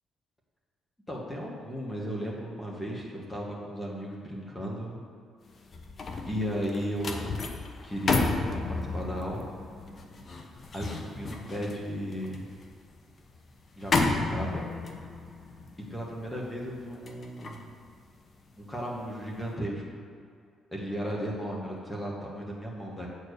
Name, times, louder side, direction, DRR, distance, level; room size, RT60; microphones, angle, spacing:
voice 1, 1.1-5.0 6.3-7.4 7.8-9.5 10.7-12.4 13.8-14.7 15.9-17.7 18.6-20.0 20.7-23.1, equal, 15° left, -3 dB, 1.8 m, -35 dB
sound 1, 5.5-18.8 19.2-19.5, left 3 dB, 45° left, 1.0 m, -33 dB
8.6 x 4.6 x 6.8 m, 2.3 s
cardioid pair, 90°, 0 cm